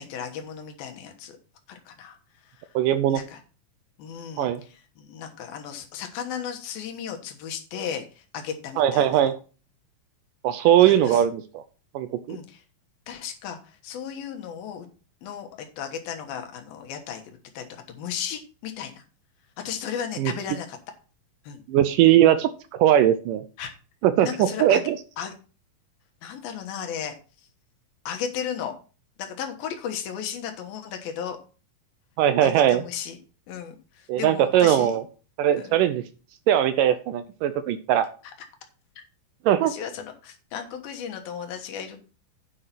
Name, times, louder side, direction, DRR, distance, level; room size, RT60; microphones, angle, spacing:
voice 1, 0.0-1.4 1.7-2.2 3.1-3.4 4.0-9.2 10.8-11.2 12.3-12.6 13.1-14.9 15.2-15.5 15.8-19.0 19.6-20.8 21.4-21.6 23.6-23.7 24.2-24.8 25.2-25.3 26.2-27.1 28.1-28.7 29.2-31.4 32.4-33.2 33.5-35.0 35.6-35.8 39.6-42.0, left 8 dB, 80° left, 4 dB, 3.1 m, -35 dB
voice 2, 2.8-3.2 4.4-4.6 8.8-9.3 10.4-11.6 11.9-12.4 20.2-20.3 21.7-23.4 24.0-25.0 32.2-32.8 34.1-35.0 35.4-36.0 36.5-38.1 39.5-39.7, right 11 dB, 75° right, 12 dB, 2.1 m, -20 dB
9.6 x 5.5 x 5.8 m, 0.36 s
omnidirectional pair, 4.2 m